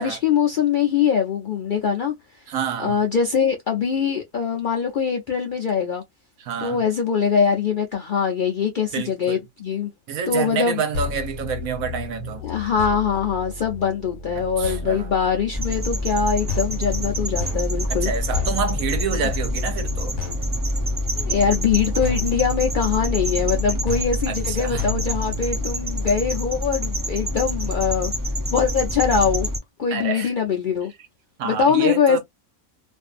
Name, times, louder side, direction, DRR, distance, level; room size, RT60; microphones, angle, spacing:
voice 1, 0.0-2.1 2.8-6.0 6.6-9.9 10.3-10.8 12.4-18.1 19.2-19.3 21.2-28.1 28.5-29.5 29.8-30.9 31.4-32.2, left 6 dB, 65° left, 0.5 m, -22 dB
voice 2, 2.5-3.0 6.4-6.8 8.9-9.4 10.1-12.4 14.3-15.1 17.9-20.1 24.3-24.8 29.9-30.3 31.4-32.2, right 7 dB, 80° right, 1.2 m, -28 dB
sound 1, 10.9-25.7, left 3 dB, 80° left, 1.1 m, -34 dB
sound 2, 15.5-29.6, left 1 dB, 30° right, 0.4 m, -26 dB
2.6 x 2.5 x 2.4 m
omnidirectional pair, 1.4 m